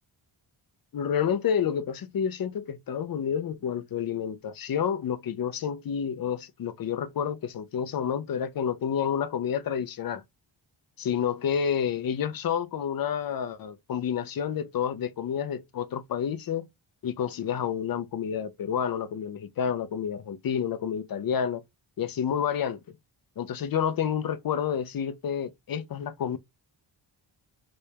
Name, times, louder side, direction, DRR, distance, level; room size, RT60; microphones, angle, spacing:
voice 1, 0.9-10.2 11.0-16.7 17.0-21.6 22.0-22.8 23.4-26.4, left 8 dB, 50° left, 0.5 m, -29 dB
4.1 x 2.2 x 3.3 m
wide cardioid pair, 95°, 48 cm